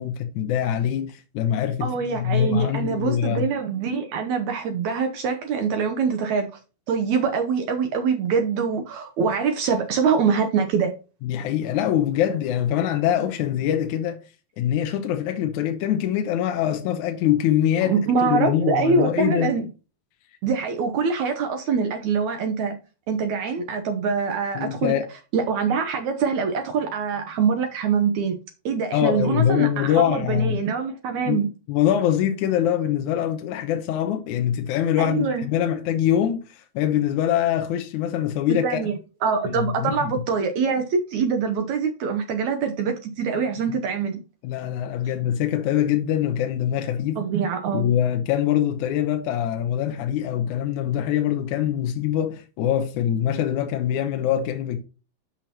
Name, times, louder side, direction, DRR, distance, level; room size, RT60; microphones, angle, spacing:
voice 1, 0.0-3.5 11.2-14.2 14.6-19.5 24.5-25.0 28.9-30.6 31.3-31.4 31.7-38.8 39.5-40.0 43.7-43.8 44.4-47.2 47.7-54.8, left 10 dB, 75° left, 1.8 m, -23 dB
voice 2, 1.8-6.5 6.9-10.9 17.8-19.7 20.4-22.8 23.1-24.9 25.3-28.4 28.6-31.5 35.0-35.4 38.5-44.2 47.2-47.9, right 5 dB, 80° right, 1.6 m, -24 dB
8.7 x 6.3 x 2.9 m
omnidirectional pair, 4.6 m